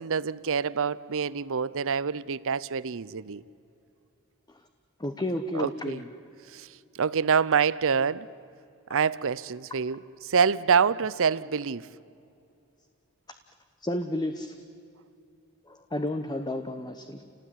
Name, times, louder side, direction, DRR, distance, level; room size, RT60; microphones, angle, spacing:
voice 1, 0.0-3.4 5.5-6.0 6.5-6.7 6.9-8.3 8.9-11.9, right 6 dB, 60° right, 19 dB, 0.7 m, -26 dB
voice 2, 5.0-6.1 13.8-14.5 15.7-17.2, left 1 dB, 20° left, 8 dB, 1.0 m, -31 dB
29.0 x 18.5 x 9.9 m, 2.6 s
head